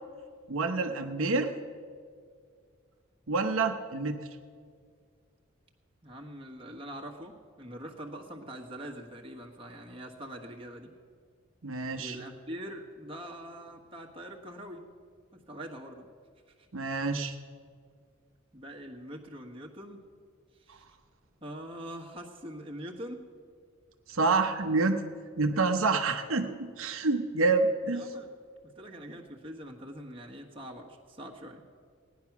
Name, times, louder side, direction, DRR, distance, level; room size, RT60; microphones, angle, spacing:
voice 1, 0.5-1.5 3.3-4.2 11.6-12.2 16.7-17.4 24.1-25.0 25.4-28.1, right 3 dB, 85° right, 5 dB, 0.9 m, -27 dB
voice 2, 6.0-10.9 12.0-14.8 15.3-16.1 18.5-20.0 20.6-21.0 21.4-23.2 27.9-28.3 28.7-31.6, equal, 25° right, 0 dB, 1.4 m, -43 dB
17.0 x 10.5 x 5.9 m, 2.1 s
head